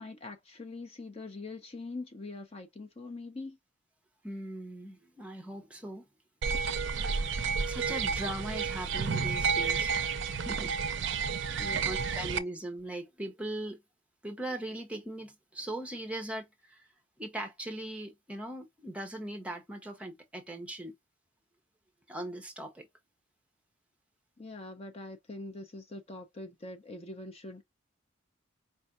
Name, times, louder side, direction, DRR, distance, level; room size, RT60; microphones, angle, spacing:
voice 1, 0.0-3.6 11.6-12.0 24.4-27.6, left 2 dB, 30° left, 0.6 m, -43 dB
voice 2, 4.2-6.0 7.7-10.8 11.5-13.8 14.2-16.9 17.2-20.9 22.1-22.9, right 1 dB, 5° right, 0.8 m, -40 dB
sound 1, 6.4-12.4, right 5 dB, 60° right, 0.5 m, -31 dB
4.5 x 3.2 x 2.5 m
head